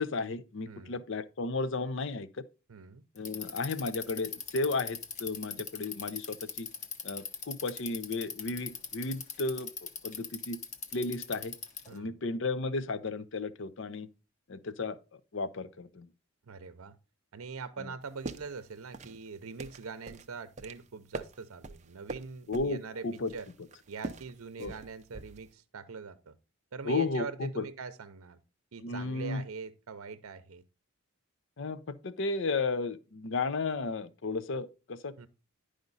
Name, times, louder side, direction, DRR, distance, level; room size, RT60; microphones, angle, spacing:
voice 1, 0.0-2.3 3.2-6.7 7.0-10.6 10.9-11.5 11.9-14.1 14.5-16.1 17.8-17.9 22.5-22.8 23.0-23.3 24.6-24.7 26.8-27.7 28.8-29.4 31.6-35.1, left 3 dB, 60° left, 0.5 m, -34 dB
voice 2, 0.7-1.0 2.7-3.0 11.9-12.2 16.4-17.0 17.3-23.0 23.3-23.5 23.9-26.3 26.7-28.4 28.7-30.6 35.2-35.3, right 5 dB, 80° right, 0.6 m, -43 dB
Bicycle, 3.2-12.0, left 6 dB, 35° left, 0.9 m, -40 dB
sound 1, 18.0-25.5, right 2 dB, 35° right, 0.5 m, -45 dB
10.5 x 5.1 x 4.0 m
head